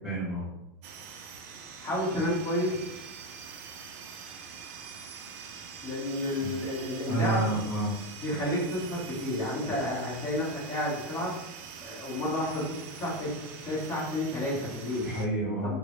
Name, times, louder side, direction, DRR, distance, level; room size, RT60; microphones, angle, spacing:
voice 1, 0.0-0.5 6.4-6.6 7.1-8.0 15.0-15.8, right 2 dB, ahead, -12 dB, 0.7 m, -29 dB
sound 1, 0.8-15.3, right 6 dB, 40° right, 0.4 m, -44 dB
voice 2, 1.8-2.8 5.8-7.5 8.2-11.4 11.8-15.1 15.6-15.8, left 1 dB, 25° left, -6 dB, 1.1 m, -31 dB
3.7 x 2.0 x 3.0 m, 0.89 s
supercardioid pair, 170°, 12 cm